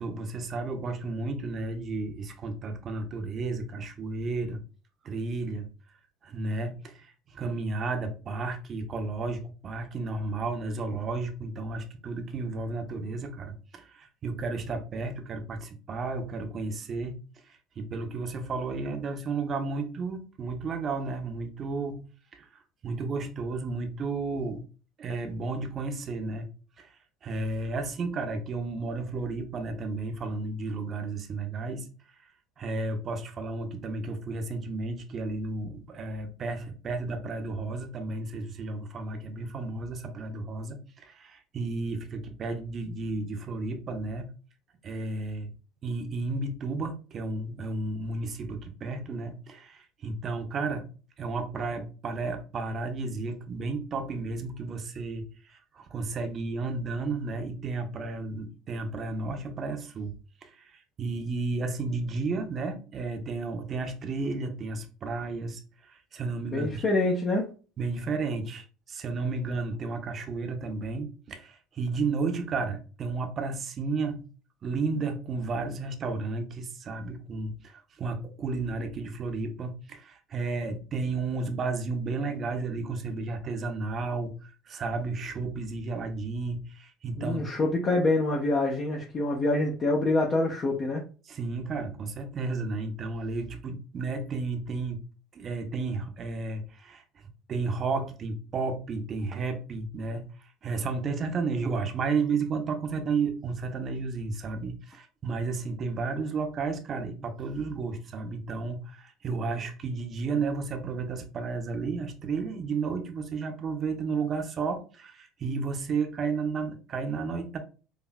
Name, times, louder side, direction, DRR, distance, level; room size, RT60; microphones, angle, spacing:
voice 1, 0.0-4.6 5.0-5.7 6.2-17.2 17.5-22.1 22.3-22.5 22.8-24.6 25.0-26.5 26.8-26.9 27.2-31.9 32.2-32.3 32.6-44.3 44.8-45.5 45.8-50.9 51.2-60.1 60.4-66.8 67.8-74.3 74.6-87.4 91.3-95.0 95.3-97.0 97.5-117.6, right 3 dB, 40° right, 0.8 m, -33 dB
voice 2, 66.5-67.5 87.2-91.0, left 2 dB, 35° left, 0.8 m, -26 dB
4.8 x 2.6 x 2.2 m
hypercardioid pair, 70°, 0 cm